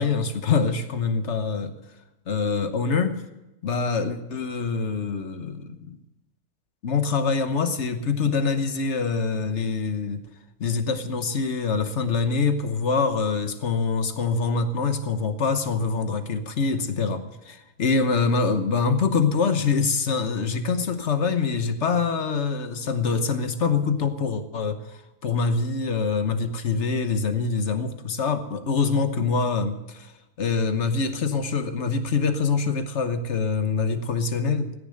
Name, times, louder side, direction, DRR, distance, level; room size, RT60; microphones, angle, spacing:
voice 1, 0.0-1.7 2.3-3.2 3.6-6.0 6.8-10.2 10.6-24.8 25.2-30.1 30.4-34.7, left 4 dB, 50° left, 9 dB, 1.3 m, -25 dB
15.5 x 10.5 x 6.6 m, 0.95 s
omnidirectional pair, 1.6 m